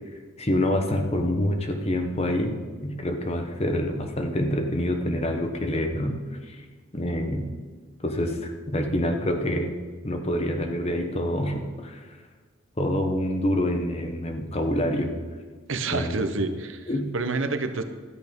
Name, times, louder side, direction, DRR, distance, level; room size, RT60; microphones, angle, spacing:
voice 1, 0.4-6.6 6.9-7.5 8.0-9.7 10.0-12.1 12.8-15.1 15.9-16.1 16.9-17.1, left 1 dB, 30° left, 4 dB, 1.1 m, -26 dB
voice 2, 15.7-16.9 17.1-17.8, right 3 dB, 70° right, 8 dB, 0.9 m, -28 dB
13.0 x 8.4 x 5.3 m, 1.5 s
head